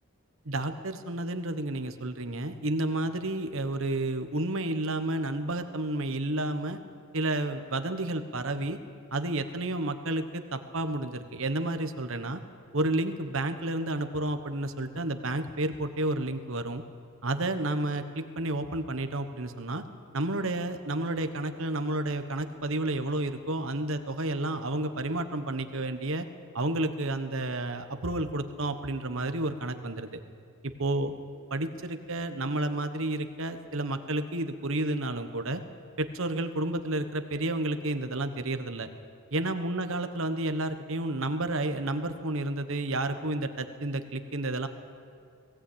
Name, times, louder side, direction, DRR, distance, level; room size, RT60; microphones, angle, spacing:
voice 1, 0.4-6.8 7.1-8.8 9.1-12.4 12.7-16.8 17.2-19.8 20.1-26.3 26.5-30.1 30.6-31.1 31.5-35.6 36.0-38.9 39.3-44.7, right 2 dB, 60° right, 8 dB, 1.3 m, -31 dB
19.5 x 17.0 x 8.7 m, 2.4 s
head